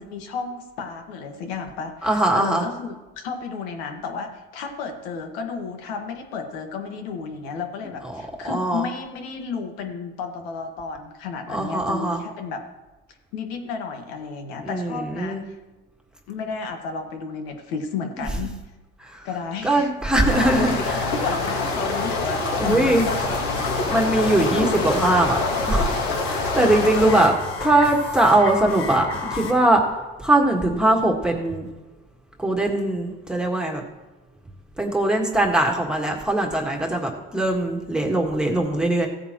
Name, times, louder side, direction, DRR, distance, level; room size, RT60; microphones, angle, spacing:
voice 1, 0.0-12.6 13.3-15.6 16.3-18.6 19.2-19.9 20.4-23.3, left 5 dB, 85° left, 5 dB, 1.7 m, -32 dB
voice 2, 2.0-2.7 8.0-8.9 11.5-12.2 14.6-15.4 19.0-19.3 19.6-21.1 22.6-23.1 23.9-25.9 26.2-27.3 27.6-29.8 30.2-31.7 32.4-33.8 34.8-39.1, right 1 dB, 5° right, -1 dB, 1.7 m, -21 dB
sound 1, 20.3-27.3, left 3 dB, 65° left, 2.4 m, -25 dB
sound 2, 22.6-29.5, left 5 dB, 45° left, 4.0 m, -33 dB
15.5 x 9.1 x 3.0 m, 1.2 s
supercardioid pair, 105°, 30 cm